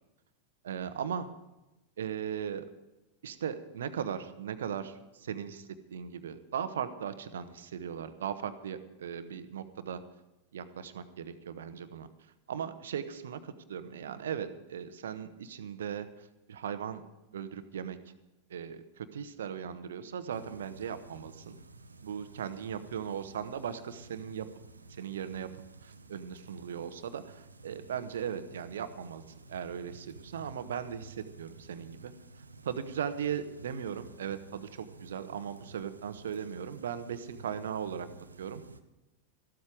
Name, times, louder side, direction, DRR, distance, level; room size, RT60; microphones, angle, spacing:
voice 1, 0.6-1.3 2.0-2.7 3.2-10.0 10.5-12.1 12.5-16.1 16.5-17.0 17.3-18.0 18.5-21.6 22.0-24.5 25.0-25.5 25.8-29.2 29.5-32.1 32.6-38.1 38.4-38.6, right 8 dB, 65° right, 11 dB, 1.2 m, -38 dB
sound 1, 20.3-38.8, right 3 dB, 80° right, 0.9 m, -53 dB
14.5 x 13.0 x 5.0 m, 1.0 s
figure-of-eight pair, 90°, 0 cm